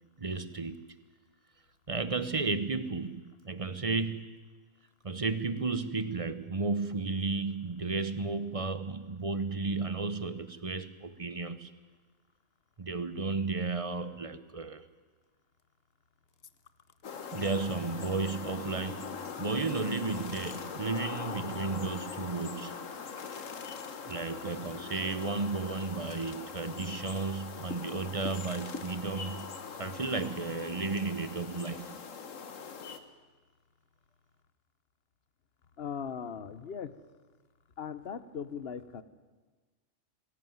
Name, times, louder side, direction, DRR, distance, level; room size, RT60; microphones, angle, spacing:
voice 1, 0.2-0.8 1.9-4.3 5.0-11.7 12.8-14.9 17.3-22.8 24.1-29.5 29.8-32.0, right 3 dB, 30° right, 13 dB, 0.9 m, -33 dB
sound 1, 17.0-33.0, left 5 dB, 70° left, 1.7 m, -41 dB
voice 2, 35.8-36.9 37.8-39.0, left 7 dB, 50° left, 14 dB, 1.2 m, -39 dB
21.0 x 16.5 x 9.4 m, 1.4 s
omnidirectional pair, 1.4 m